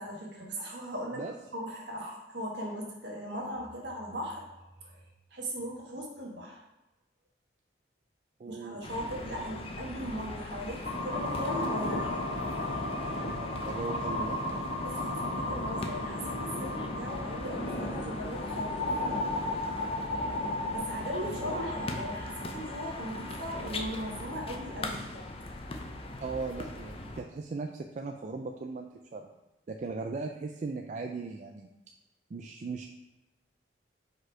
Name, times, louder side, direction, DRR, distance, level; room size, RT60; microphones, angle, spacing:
voice 1, 0.0-1.2 1.5-4.5 4.8-5.0 5.3-6.6 8.5-12.1 14.8-18.9 20.7-25.2, equal, 65° right, -2 dB, 1.5 m, -38 dB
voice 2, 8.4-8.9 9.3-9.4 13.1-14.4 21.2-21.5 26.2-29.3 29.7-31.7 32.3-32.9, right 3 dB, 40° right, 4 dB, 0.3 m, -38 dB
sound 1, 8.8-27.2, left 2 dB, 30° left, 0.6 m, -41 dB
sound 2, 10.8-24.9, left 1 dB, 75° left, 1.5 m, -35 dB
5.2 x 4.2 x 4.6 m, 0.99 s
head